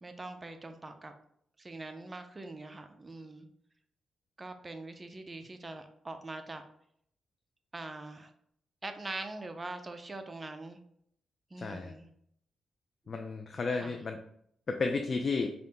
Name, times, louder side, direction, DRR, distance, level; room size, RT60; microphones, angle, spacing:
voice 1, 0.0-1.1 1.6-3.5 4.4-6.6 7.7-8.3 8.8-10.8 11.5-12.1 13.1-13.2 13.7-14.0, right 2 dB, 25° right, 7 dB, 0.5 m, -43 dB
voice 2, 11.6-11.9 13.1-14.2 14.7-15.5, left 4 dB, 50° left, 4 dB, 0.3 m, -32 dB
5.0 x 2.1 x 2.9 m, 0.69 s
cardioid pair, 75°, 0 cm